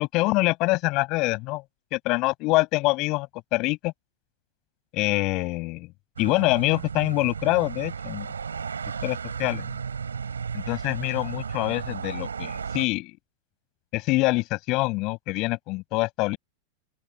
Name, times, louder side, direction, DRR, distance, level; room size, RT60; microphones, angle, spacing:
voice 1, 0.0-1.6 1.9-3.9 4.9-5.9 6.2-8.3 9.0-9.6 10.5-13.1 13.9-16.4, left 23 dB, 40° left, 7.9 m, -25 dB
sound 1, 6.2-12.9, right 6 dB, 70° right, 5.6 m, -34 dB
open air
figure-of-eight pair, 90°, 0 cm